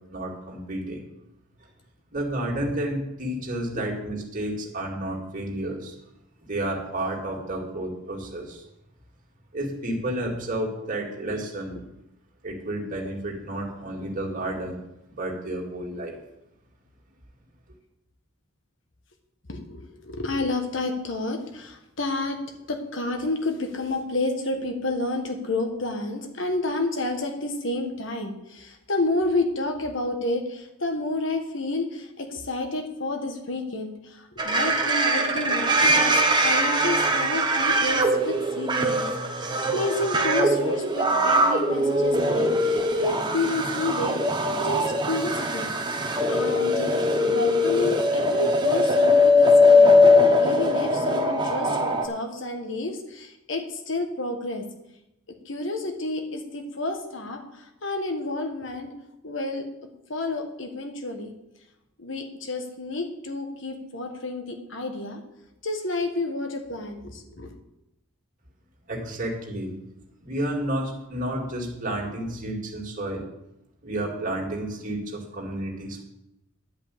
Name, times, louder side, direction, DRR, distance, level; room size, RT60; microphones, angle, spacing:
voice 1, 0.1-1.0 2.1-6.0 6.5-8.6 9.5-11.8 12.4-14.8 15.2-16.2 68.9-69.7 70.2-73.3 73.8-76.0, right 1 dB, 40° right, -1 dB, 2.3 m, -31 dB
voice 2, 19.5-22.4 22.7-44.2 44.6-45.7 46.3-46.9 47.2-50.0 50.4-54.7 55.4-58.9 59.2-59.6 60.1-61.3 62.0-65.2 65.6-67.6, left 2 dB, 60° left, 5 dB, 1.5 m, -30 dB
sound 1, 34.4-52.1, left 1 dB, 20° right, 0.9 m, -21 dB
10.5 x 5.4 x 8.5 m, 0.89 s
head